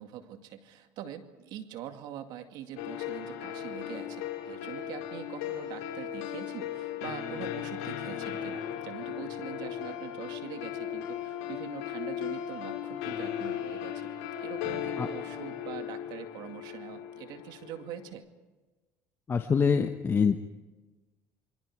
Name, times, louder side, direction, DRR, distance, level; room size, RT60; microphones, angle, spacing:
voice 1, 0.0-14.1 14.4-18.3, right 10 dB, 70° right, 7 dB, 2.2 m, -44 dB
sound 1, 2.8-18.1, left 10 dB, 90° left, 4.9 m, -37 dB
voice 2, 19.3-20.4, left 6 dB, 30° left, 6 dB, 1.2 m, -25 dB
28.0 x 24.0 x 4.8 m, 1.2 s
supercardioid pair, 95°, 8 cm